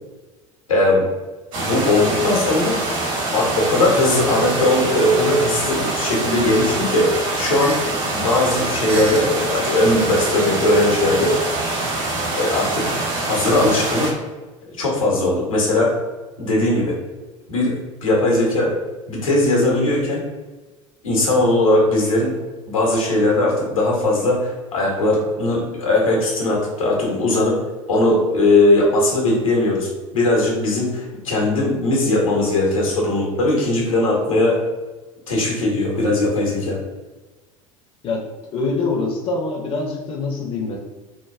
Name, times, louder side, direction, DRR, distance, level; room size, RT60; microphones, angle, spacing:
voice 1, 0.7-1.1 1.6-2.8 3.3-7.8 8.1-11.6 12.4-14.2 14.7-16.0 16.4-17.0 17.5-18.8 19.1-20.3 21.0-22.4 22.7-27.6 27.9-34.6 35.3-36.8, left 2 dB, 80° left, -3 dB, 0.8 m, -19 dB
sound 1, 1.5-14.1, right 2 dB, 50° right, 1.0 m, -24 dB
sound 2, 7.6-7.8 8.1-8.2 8.9-9.5 10.4-10.5 11.4-13.2, right 3 dB, 35° right, 0.6 m, -33 dB
voice 2, 38.5-40.8, left 3 dB, 35° left, 0 dB, 0.5 m, -24 dB
3.1 x 2.2 x 2.4 m, 1.2 s
figure-of-eight pair, 70°, 17 cm